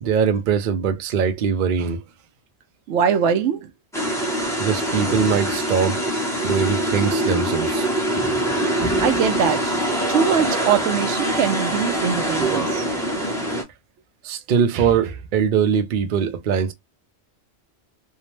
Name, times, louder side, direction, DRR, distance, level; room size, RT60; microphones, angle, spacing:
voice 1, 0.0-2.0 4.6-6.0 6.4-7.9 14.2-16.7, right 7 dB, 60° right, 0.5 m, -21 dB
voice 2, 2.9-3.7 9.0-9.7 10.1-12.8, right 7 dB, 80° right, 0.9 m, -22 dB
sound 1, 3.9-13.6, right 1 dB, 5° left, 0.7 m, -23 dB
2.7 x 2.0 x 3.0 m
omnidirectional pair, 1.2 m